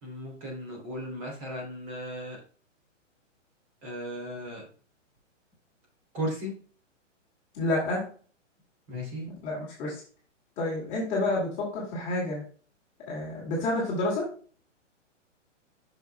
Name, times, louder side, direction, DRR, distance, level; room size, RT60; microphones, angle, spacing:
voice 1, 0.0-2.4 3.8-4.6 6.1-6.5 8.9-9.3, equal, 25° right, -1 dB, 3.2 m, -36 dB
voice 2, 7.5-8.0 9.4-9.9 10.6-12.4 13.1-14.3, left 2 dB, 20° left, -4 dB, 2.1 m, -29 dB
7.9 x 6.2 x 2.3 m, 0.40 s
hypercardioid pair, 160°, 38 cm